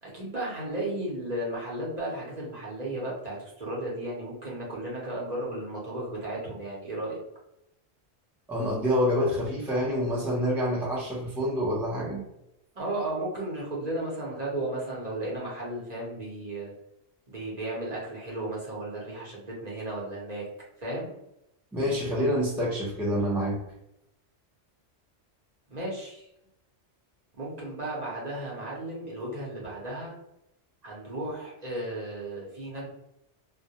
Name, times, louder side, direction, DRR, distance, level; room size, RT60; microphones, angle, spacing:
voice 1, 0.0-7.2 12.8-16.7 17.3-20.4 20.8-21.1 25.7-26.3 27.4-30.1 30.8-32.9, right 1 dB, 40° right, -5 dB, 0.8 m, -34 dB
voice 2, 8.5-12.2 21.7-23.6, equal, 5° right, -5 dB, 0.4 m, -27 dB
2.2 x 2.1 x 2.7 m, 0.82 s
omnidirectional pair, 1.2 m